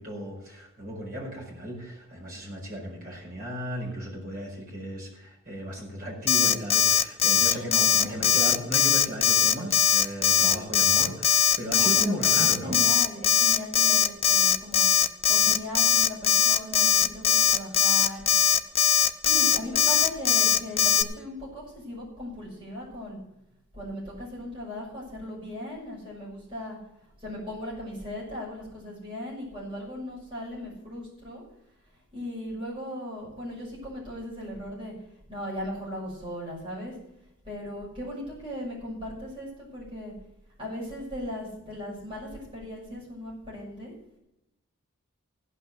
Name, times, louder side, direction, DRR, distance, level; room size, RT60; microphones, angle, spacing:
voice 1, 0.0-12.8, equal, 45° right, -3 dB, 4.9 m, -35 dB
Alarm, 6.3-21.0, left 9 dB, 30° left, 0.6 m, -20 dB
voice 2, 7.4-8.2 10.4-10.7 11.6-14.9 15.3-18.5 19.2-23.2 23.7-26.8 27.2-31.4 32.1-34.9 35.3-36.9 37.4-40.1 40.6-43.9, left 1 dB, 25° right, -6 dB, 6.4 m, -38 dB
16.0 x 5.8 x 8.1 m, 0.85 s
head